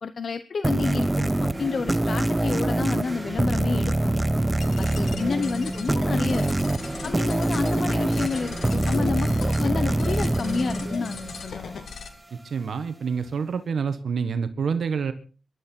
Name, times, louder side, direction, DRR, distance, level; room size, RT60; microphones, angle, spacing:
voice 1, 0.0-4.2 4.8-6.5 7.0-11.8, left 5 dB, 55° left, 11 dB, 0.9 m, -30 dB
sound 1, 0.6-11.8, right 1 dB, 15° right, 0.8 m, -25 dB
sound 2, 4.6-12.1, left 5 dB, 75° left, 2.5 m, -39 dB
voice 2, 12.4-15.1, right 6 dB, 65° right, 9 dB, 1.4 m, -27 dB
23.5 x 12.0 x 4.5 m, 0.39 s
wide cardioid pair, 115°, 0 cm